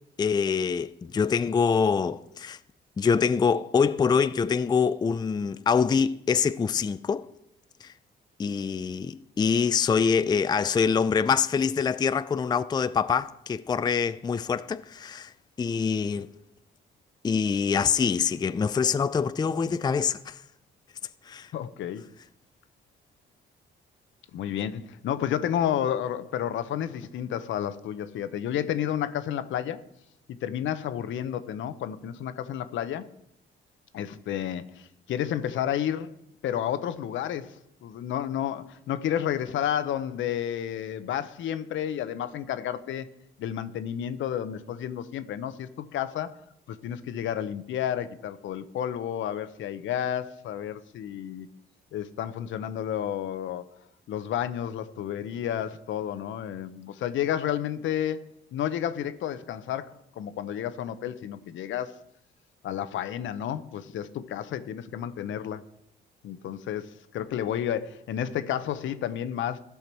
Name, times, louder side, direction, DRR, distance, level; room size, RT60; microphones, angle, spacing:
voice 1, 0.2-2.6 3.0-7.3 7.8-7.9 8.4-15.3 15.6-16.3 17.2-20.4 21.3-21.5, left 6 dB, 20° left, 0.4 m, -25 dB
voice 2, 21.5-22.1 24.3-29.8 30.3-33.1 33.9-36.1 36.4-43.1 43.4-46.4 46.7-51.5 51.9-53.7 54.1-58.2 58.5-62.0 62.6-65.6 66.2-69.6, left 10 dB, 75° left, 0.8 m, -31 dB
15.0 x 5.8 x 4.5 m
cardioid pair, 90°, 20 cm